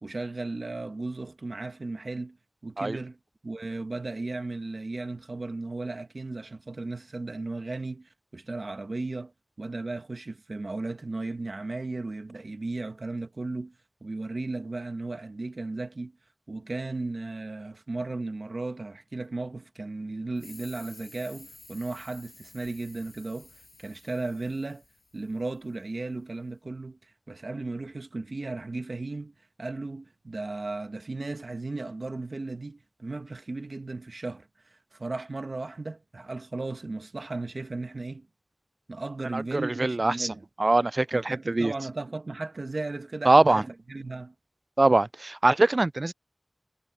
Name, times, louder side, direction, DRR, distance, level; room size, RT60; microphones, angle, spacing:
voice 1, 0.0-2.4 2.6-3.2 3.4-9.3 9.6-13.7 14.0-16.1 16.5-23.5 23.8-24.8 25.1-34.5 34.9-38.3 38.9-40.4 41.1-44.3, right 3 dB, 85° right, 1.3 m, -35 dB
sound 1, 20.4-25.7, left 2 dB, 75° left, 6.6 m, -52 dB
voice 2, 39.3-41.7 43.3-43.6 44.8-46.1, right 2 dB, 65° right, 0.3 m, -23 dB
wide cardioid pair, 40°, 0 cm